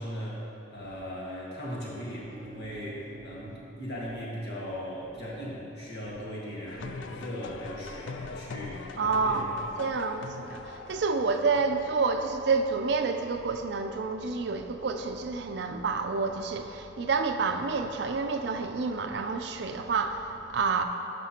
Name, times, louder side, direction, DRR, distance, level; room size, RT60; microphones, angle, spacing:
voice 1, 0.0-9.5 9.9-10.0, equal, 60° left, 1.7 m, -38 dB
sound 1, 2.3-10.2, right 2 dB, 35° right, 1.2 m, -54 dB
sound 2, 6.7-11.8, left 4 dB, 90° left, 0.4 m, -42 dB
voice 2, 9.0-9.5 9.8-20.8, right 4 dB, 65° right, 0.4 m, -29 dB
10.5 x 6.0 x 2.9 m
head